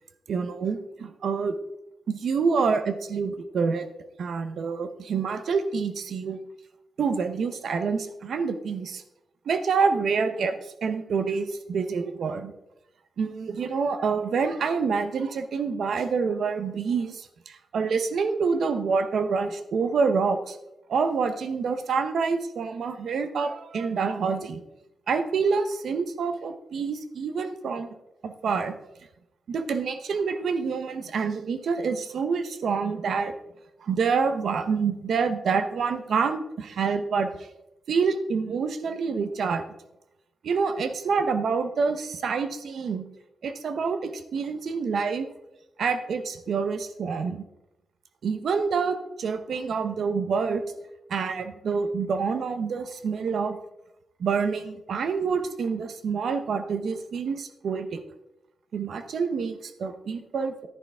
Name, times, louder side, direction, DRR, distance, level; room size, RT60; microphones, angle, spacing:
voice 1, 0.3-1.5 2.1-3.9 4.2-6.4 7.0-9.0 9.5-12.5 13.2-20.6 20.9-24.6 25.1-27.9 28.2-28.8 29.5-33.3 33.8-37.3 37.9-39.7 40.4-43.1 43.4-45.3 45.8-47.5 48.2-50.6 51.1-53.6 54.2-58.0 58.7-60.7, right 5 dB, 60° right, 9 dB, 0.9 m, -27 dB
11.0 x 9.9 x 3.5 m, 0.90 s
wide cardioid pair, 175°, 0 cm